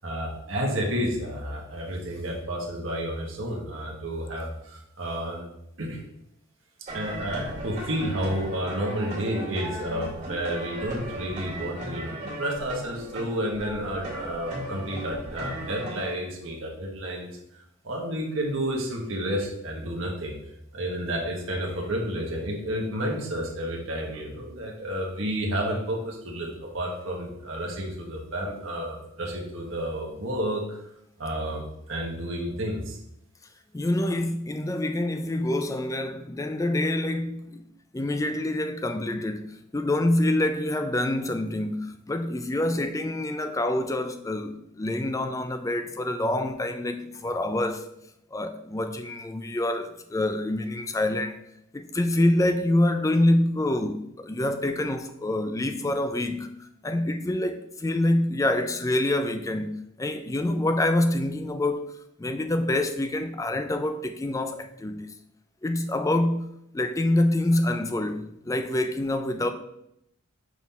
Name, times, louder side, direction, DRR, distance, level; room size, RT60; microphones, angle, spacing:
voice 1, 0.0-5.4 5.8-6.0 6.9-20.4 20.7-30.8 31.2-31.6 31.9-33.0, equal, 65° right, 1.3 m, -31 dB
sound 1, 6.9-16.1, right 1 dB, 35° right, 2.3 m, -37 dB
voice 2, 33.7-37.6 37.9-47.9 48.3-51.4 51.7-61.9 62.2-65.1 65.6-69.5, left 1 dB, 15° left, 0.3 m, -26 dB
6.1 x 3.9 x 4.1 m
head